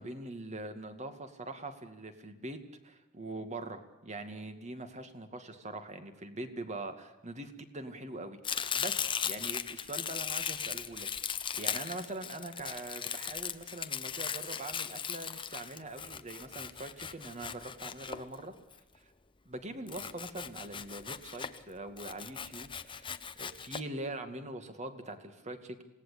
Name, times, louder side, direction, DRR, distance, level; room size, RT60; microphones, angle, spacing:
voice 1, 0.0-18.5 19.5-25.8, right 2 dB, 35° right, 8 dB, 2.2 m, -43 dB
Domestic sounds home sounds, 8.4-18.7 19.9-21.6 22.0-23.8, left 7 dB, 25° left, 0.9 m, -38 dB
27.0 x 18.0 x 8.5 m, 0.98 s
head